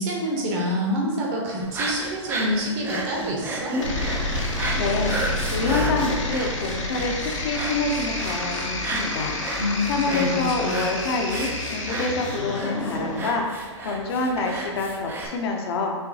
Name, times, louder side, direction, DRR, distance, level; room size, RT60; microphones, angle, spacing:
voice 1, 0.0-3.7 9.6-10.9, equal, 40° right, -2 dB, 1.1 m, -27 dB
sound 1, 1.6-15.3, right 2 dB, 15° right, 0.4 m, -33 dB
sound 2, 3.8-13.3, left 2 dB, 80° left, 0.9 m, -29 dB
voice 2, 4.7-5.1 5.5-9.4 9.9-13.4 13.8-15.9, left 3 dB, 55° left, 2 dB, 0.7 m, -27 dB
5.6 x 2.2 x 2.7 m, 1.4 s
hypercardioid pair, 120°, 16 cm